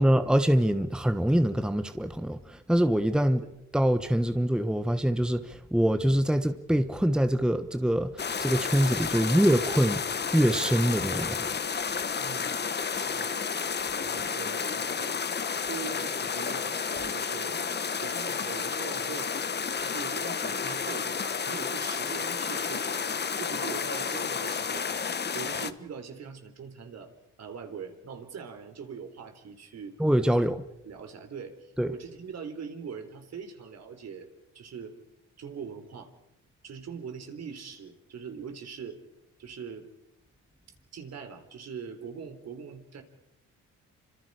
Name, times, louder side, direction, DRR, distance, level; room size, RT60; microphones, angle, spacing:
voice 1, 0.0-3.4 3.7-10.0 10.3-11.5 30.0-30.6 31.8-31.9, equal, 5° right, 1.2 m, -24 dB
sound 1, 8.2-25.7, left 6 dB, 35° left, 1.2 m, -31 dB
voice 2, 12.2-12.6 12.9-13.5 13.9-15.2 15.7-19.3 19.8-23.1 23.4-27.1 27.4-30.0 30.8-31.6 31.9-34.3 34.5-35.0 35.4-36.1 36.6-39.0 39.4-39.9 40.9-43.0, right 6 dB, 60° right, 4.0 m, -42 dB
28.5 x 25.5 x 5.0 m
cardioid pair, 90°, 30 cm